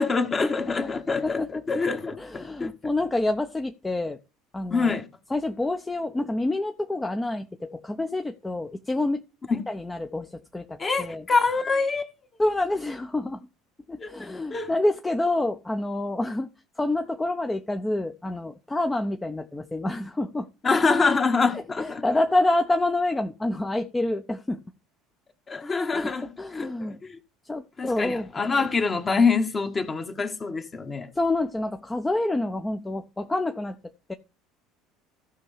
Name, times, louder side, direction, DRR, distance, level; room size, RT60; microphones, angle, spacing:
voice 1, 0.0-2.7 4.7-5.1 9.5-9.6 10.8-12.1 14.0-14.7 20.6-22.0 25.5-27.2 27.8-31.1, left 4 dB, 30° left, 1.4 m, -25 dB
voice 2, 0.9-1.6 2.2-4.2 4.5-5.0 5.3-9.2 9.7-11.2 12.4-13.5 13.9-16.5 16.8-20.5 21.5-24.6 25.9-27.0 27.4-28.3 31.1-34.1, left 2 dB, 15° left, 0.7 m, -27 dB
15.5 x 5.4 x 3.4 m
hypercardioid pair, 65°, 0 cm